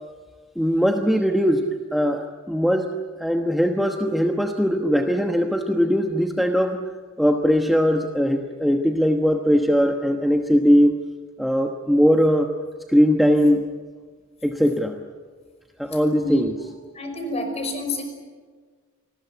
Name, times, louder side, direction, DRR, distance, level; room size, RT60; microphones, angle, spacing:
voice 1, 0.6-6.9 7.2-11.0 11.4-12.5 12.9-13.6 14.4-15.0 15.8-16.5, equal, ahead, 3 dB, 1.1 m, -20 dB
voice 2, 16.9-18.0, left 2 dB, 30° left, 5 dB, 5.4 m, -28 dB
28.5 x 20.5 x 8.2 m, 1.5 s
head